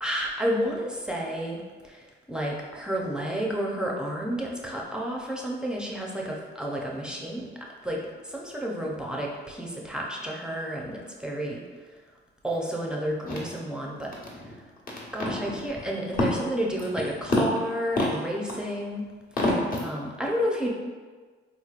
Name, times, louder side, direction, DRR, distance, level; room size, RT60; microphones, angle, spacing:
voice 1, 0.0-7.5 7.8-11.6 12.4-14.1 15.1-17.5 17.8-18.0 18.2-19.1 20.0-20.7, equal, 5° right, -2 dB, 0.5 m, -31 dB
voice 2, 14.1-14.6 14.9-15.9 16.2-16.4 17.3-17.4 18.0-18.1 19.3-20.0, left 2 dB, 45° left, -6 dB, 1.2 m, -28 dB
4.1 x 3.0 x 2.4 m, 1.5 s
cardioid pair, 90°, 20 cm